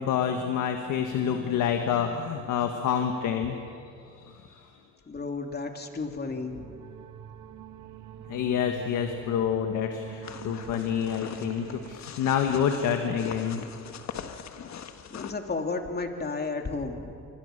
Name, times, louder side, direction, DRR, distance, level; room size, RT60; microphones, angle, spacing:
voice 1, 0.0-3.6 4.2-4.6 8.3-13.6, left 8 dB, 85° left, 5 dB, 1.6 m, -28 dB
voice 2, 5.1-6.6 15.1-17.1, left 3 dB, 35° left, 4 dB, 2.9 m, -32 dB
sound 1, 6.3-12.0, right 9 dB, 75° right, 1.3 m, -44 dB
sound 2, 10.2-15.3, left 8 dB, 65° left, 1.5 m, -41 dB
26.5 x 24.0 x 6.7 m, 2.5 s
cardioid pair, 90°, 30 cm